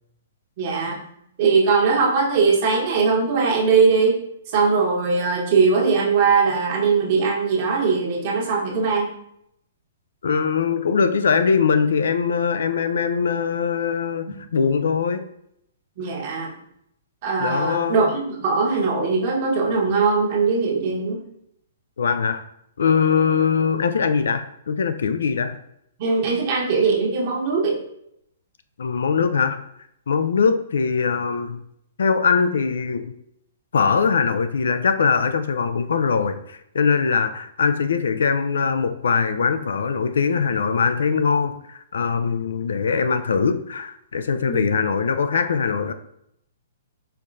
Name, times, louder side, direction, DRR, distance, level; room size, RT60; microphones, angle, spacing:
voice 1, 0.6-1.0 1.4-4.2 4.5-9.1 16.0-16.5 17.2-21.2 26.0-27.8 44.5-44.7, right 4 dB, 50° right, -2 dB, 1.1 m, -20 dB
voice 2, 10.2-15.2 17.4-18.1 22.0-22.4 22.8-25.6 28.8-29.6 30.1-31.6 32.0-33.1 33.7-45.9, left 5 dB, 80° left, 10 dB, 0.3 m, -21 dB
4.6 x 3.6 x 2.5 m, 0.76 s
hypercardioid pair, 135°, 0 cm